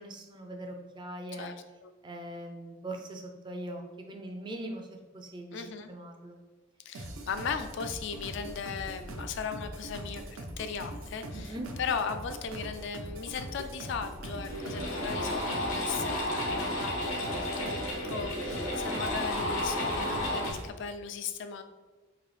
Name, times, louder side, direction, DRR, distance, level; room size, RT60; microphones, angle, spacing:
voice 1, 0.0-1.5 2.0-4.9 5.1-5.6 5.9-6.4 11.3-11.7 17.9-18.1, right 1 dB, 25° right, 3 dB, 0.4 m, -41 dB
voice 2, 1.4-1.9 5.5-5.9 6.9-21.6, left 6 dB, 60° left, 9 dB, 0.3 m, -37 dB
sound 1, 6.9-20.7, right 1 dB, 80° right, 0.6 m, -42 dB
sound 2, 13.8-13.9 14.3-20.5, left 1 dB, 85° left, 1.2 m, -32 dB
3.9 x 2.7 x 3.2 m, 1.2 s
head